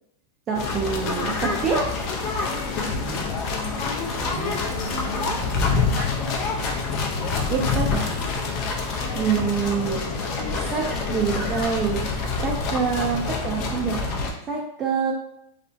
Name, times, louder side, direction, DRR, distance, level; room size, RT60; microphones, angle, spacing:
sound 1, 0.5-14.3, left 4 dB, 45° left, 0.5 m, -26 dB
voice 1, 0.5-1.9 7.5-8.1 9.1-10.0 10.7-12.0 12.4-15.1, right 6 dB, 30° right, -1 dB, 0.4 m, -26 dB
voice 2, 2.8-3.4 4.2-6.1 13.1-13.2, right 3 dB, 60° right, -1 dB, 0.9 m, -37 dB
sound 2, 3.9-10.7, right 2 dB, 80° right, 0.5 m, -43 dB
2.5 x 2.0 x 2.5 m, 0.77 s
hypercardioid pair, 105°, 0 cm